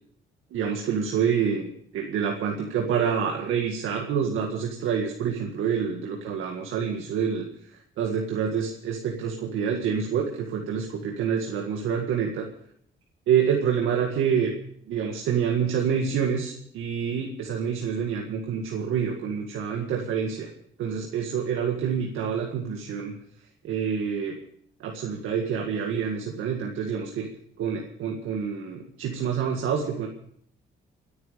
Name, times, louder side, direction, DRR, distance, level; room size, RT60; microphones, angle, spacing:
voice 1, 0.5-1.7 1.9-7.5 8.0-12.5 13.3-14.5 14.9-20.5 20.8-23.1 23.6-24.4 24.8-27.3 27.6-30.1, right 7 dB, 85° right, 1 dB, 2.0 m, -27 dB
26.5 x 9.5 x 5.2 m, 0.67 s
cardioid pair, 90°, 20 cm